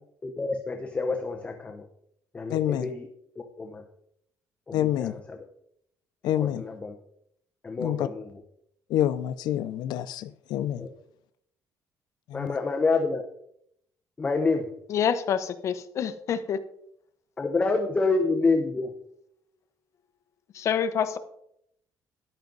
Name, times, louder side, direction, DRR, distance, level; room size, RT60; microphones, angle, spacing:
voice 1, 0.2-1.9 2.3-3.1 3.6-3.8 4.7-5.4 6.4-7.0 7.6-8.3 10.8-10.9 12.3-13.2 14.2-14.7 17.4-18.9, left 3 dB, 15° left, 0.9 m, -27 dB
voice 2, 2.5-2.9 4.7-5.2 6.2-6.7 7.8-8.1 8.9-10.9 12.3-12.6, left 11 dB, 90° left, 0.6 m, -27 dB
voice 3, 14.9-16.6 20.5-21.2, left 8 dB, 45° left, 1.0 m, -27 dB
13.5 x 10.5 x 4.0 m
cardioid pair, 175°, 7 cm